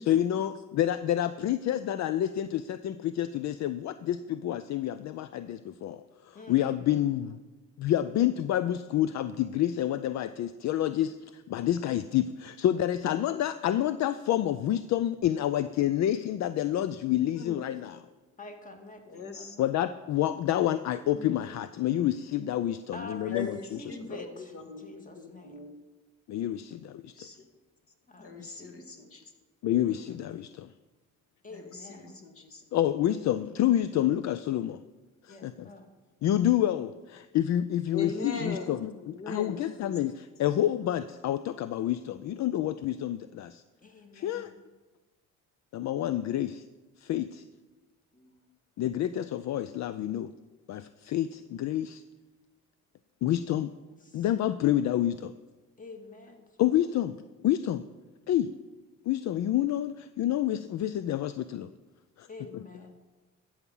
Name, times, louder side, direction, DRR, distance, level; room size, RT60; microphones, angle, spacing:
voice 1, 0.0-7.4 7.8-18.0 19.6-23.5 26.3-27.1 29.6-30.7 32.7-34.8 35.2-35.7 36.2-43.6 44.1-44.5 45.7-46.6 47.0-47.4 48.8-50.3 50.7-52.0 53.2-53.7 54.1-55.3 56.6-57.2 57.4-57.8 58.3-58.5 59.1-61.7 62.2-62.3 62.5-62.6, left 12 dB, 65° left, 13 dB, 0.5 m, -28 dB
voice 2, 6.8-7.2 17.4-17.8 19.1-19.6 20.7-20.9 21.1-21.3 23.3-24.9 25.1-25.8 27.1-27.5 28.2-29.3 31.5-32.7 33.8-34.0 37.9-39.8 48.1-48.3, left 3 dB, 50° left, 5 dB, 1.8 m, -41 dB
voice 3, 18.4-19.7 22.9-23.4 23.8-25.6 28.1-28.8 31.4-32.2 35.3-35.9 43.8-44.6 54.0-54.3 55.8-56.7 62.3-62.9, left 2 dB, 25° left, 4 dB, 1.9 m, -47 dB
13.0 x 7.2 x 5.5 m, 1.2 s
cardioid pair, 90°, 30 cm